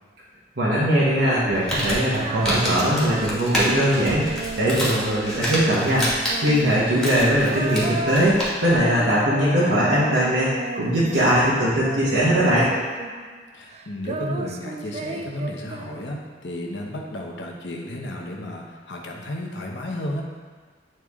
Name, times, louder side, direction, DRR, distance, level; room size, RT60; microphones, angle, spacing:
voice 1, 0.6-6.1 6.4-12.7, equal, 80° right, -8 dB, 1.2 m, -20 dB
Female singing, 1.1-11.5 11.7-13.4 13.7-16.4, right 3 dB, 35° right, 0.4 m, -34 dB
Crumpling crinkling, 1.4-8.8, equal, 5° left, 1.4 m, -29 dB
voice 2, 7.0-7.9 13.5-20.2, left 1 dB, 70° left, 0 dB, 0.9 m, -33 dB
8.9 x 3.2 x 3.6 m, 1.5 s
head